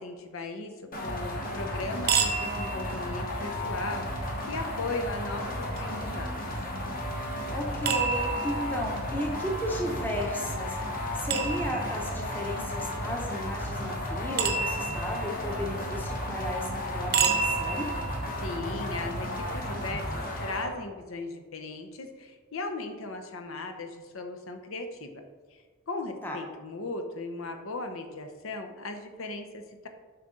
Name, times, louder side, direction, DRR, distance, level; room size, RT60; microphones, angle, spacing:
voice 1, 0.0-6.4 18.4-25.2 25.9-29.9, left 2 dB, 85° left, 6 dB, 0.9 m, -37 dB
sound 1, 0.9-20.7, left 1 dB, 45° left, 1.2 m, -34 dB
sound 2, 2.0-19.9, right 6 dB, 45° right, 0.7 m, -34 dB
voice 2, 7.1-17.9 26.2-26.4, left 1 dB, 10° left, 0 dB, 0.7 m, -34 dB
7.8 x 5.8 x 3.8 m, 1.5 s
head